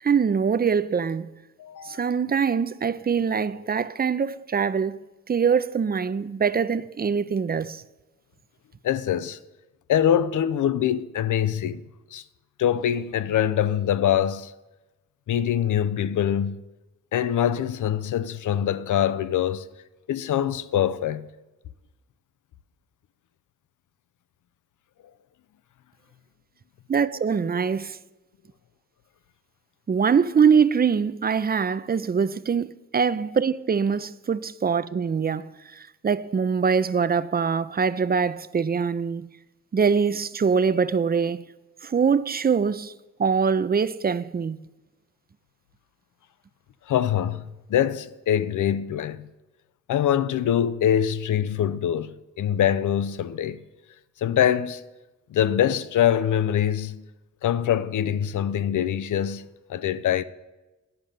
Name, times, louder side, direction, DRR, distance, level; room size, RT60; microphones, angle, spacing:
voice 1, 0.0-1.3 1.8-5.0 5.3-7.8 26.9-28.0 29.9-39.3 39.7-41.4 41.8-42.9 43.2-44.6, right 6 dB, 30° right, 0.4 m, -23 dB
voice 2, 1.6-2.0 8.8-9.4 9.9-11.8 12.1-12.2 12.6-14.5 15.3-16.6 17.1-19.6 20.1-21.3 46.9-49.3 49.9-53.6 54.2-54.8 55.3-57.0 57.4-60.2, left 10 dB, 85° left, 0.5 m, -24 dB
10.5 x 5.2 x 7.4 m
cardioid pair, 60°, 30 cm